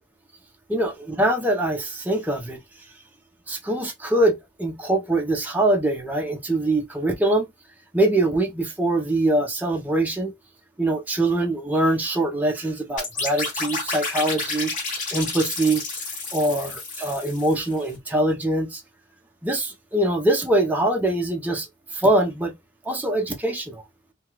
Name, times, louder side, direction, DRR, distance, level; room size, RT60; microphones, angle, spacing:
voice 1, 0.7-2.6 3.5-7.5 7.9-10.3 10.8-14.7 15.1-15.8 16.3-18.8 19.4-21.7 21.9-22.5 22.9-23.8, right 1 dB, 10° right, 0.6 m, -23 dB
sound 1, 13.0-17.8, left 3 dB, 45° left, 1.2 m, -30 dB
2.3 x 2.2 x 2.9 m
head